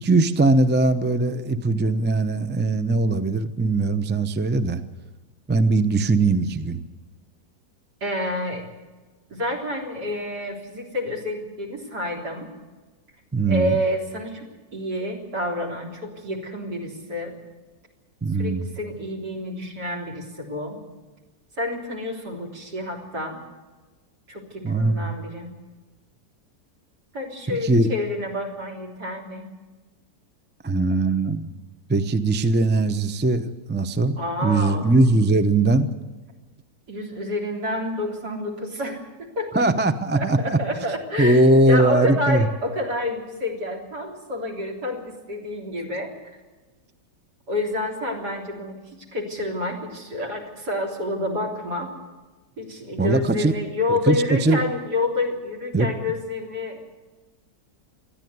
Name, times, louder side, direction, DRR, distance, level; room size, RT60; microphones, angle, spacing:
voice 1, 0.0-4.8 5.5-6.8 13.3-13.8 18.2-18.7 24.6-25.1 27.5-27.9 30.6-31.5 31.9-33.4 33.7-35.9 39.5-40.6 41.2-42.5 53.0-53.5 54.1-54.6 55.7-55.9, right 2 dB, 15° right, 11 dB, 0.4 m, -20 dB
voice 2, 8.0-8.6 9.3-12.5 13.5-17.3 18.4-20.8 21.6-23.4 24.3-25.5 27.1-29.4 34.2-34.9 35.1-35.2 36.9-39.6 40.1-46.1 47.5-51.9 52.6-56.8, left 1 dB, 65° right, 4 dB, 4.1 m, -29 dB
20.5 x 14.0 x 9.5 m, 1.3 s
omnidirectional pair, 1.9 m